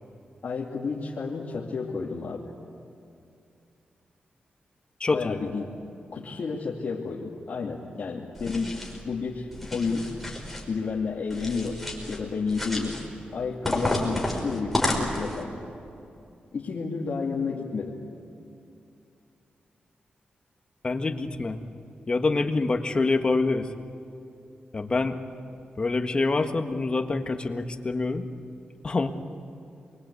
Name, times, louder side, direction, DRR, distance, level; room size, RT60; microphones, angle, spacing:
voice 1, 0.4-2.5 5.1-5.7 6.1-8.7 9.0-10.1 10.7-13.0 13.3-15.5 16.5-18.0, left 4 dB, 55° left, -4 dB, 2.4 m, -31 dB
voice 2, 5.0-5.4 20.8-21.6 22.1-23.7 24.7-25.2 25.8-28.3 28.8-29.1, left 3 dB, 30° left, 5 dB, 1.5 m, -26 dB
sound 1, 8.3-9.0 9.5-10.6 11.3-12.2 12.5-13.1 13.6-15.4, left 1 dB, ahead, 5.1 m, -30 dB
28.0 x 23.5 x 8.4 m, 2.6 s
wide cardioid pair, 125°, 3 cm